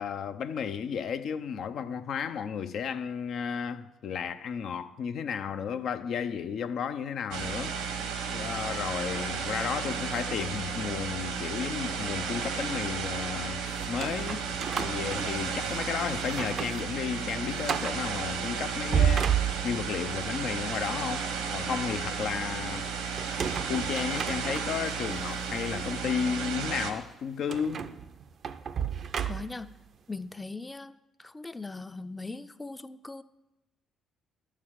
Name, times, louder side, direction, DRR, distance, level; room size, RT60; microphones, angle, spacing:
voice 1, 0.0-14.4 14.8-19.3 19.6-22.9 23.7-27.9, left 7 dB, 65° left, 0.6 m, -33 dB
sound 1, 7.3-26.9, right 6 dB, 85° right, 1.1 m, -33 dB
sound 2, 13.8-15.8 16.2-16.8 17.1-17.2 17.6-18.1 18.7-20.0 23.2-24.9 25.6-25.7 27.5-29.7, right 8 dB, 55° right, 0.5 m, -31 dB
voice 2, 29.3-29.7 30.1-33.2, left 3 dB, 20° left, 0.5 m, -40 dB
11.5 x 4.8 x 7.3 m
supercardioid pair, 60°, 0 cm